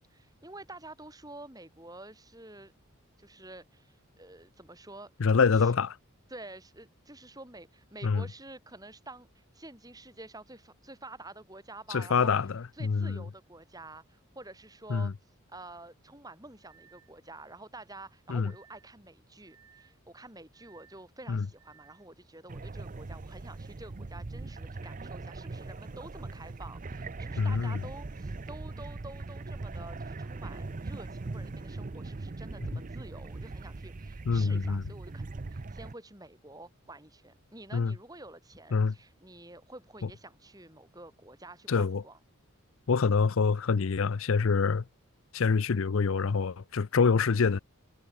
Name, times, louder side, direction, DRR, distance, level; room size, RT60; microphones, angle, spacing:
voice 1, 0.1-2.7 3.2-5.1 5.6-5.7 6.3-12.3 12.7-15.1 15.5-42.2, right 2 dB, 15° right, 5.6 m, -49 dB
voice 2, 5.2-6.0 8.0-8.2 11.9-13.2 14.9-15.1 18.3-18.5 21.3-21.4 27.4-27.8 34.3-34.8 37.7-37.9 38.7-38.9 41.7-42.0 42.9-44.8 45.3-47.6, left 5 dB, 65° left, 0.5 m, -26 dB
sound 1, 15.1-15.2 16.6-17.2 18.4-18.9 19.5-20.0 20.5-21.0 21.6-22.1, right 8 dB, 80° right, 3.1 m, -61 dB
sound 2, 22.5-35.9, right 3 dB, 35° right, 0.5 m, -40 dB
head